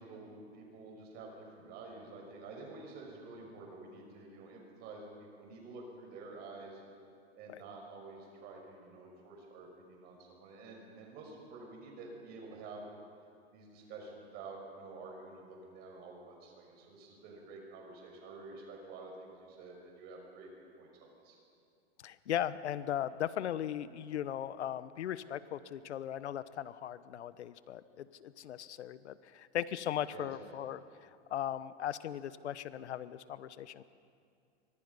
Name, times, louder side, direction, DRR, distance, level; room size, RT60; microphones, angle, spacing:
voice 1, 0.0-6.8 7.4-12.9 13.5-21.4 30.1-30.3, right 3 dB, 30° right, 0 dB, 6.0 m, -49 dB
voice 2, 22.0-33.8, left 10 dB, 90° left, 15 dB, 1.1 m, -38 dB
30.0 x 25.5 x 5.6 m, 2.4 s
supercardioid pair, 160°, 33 cm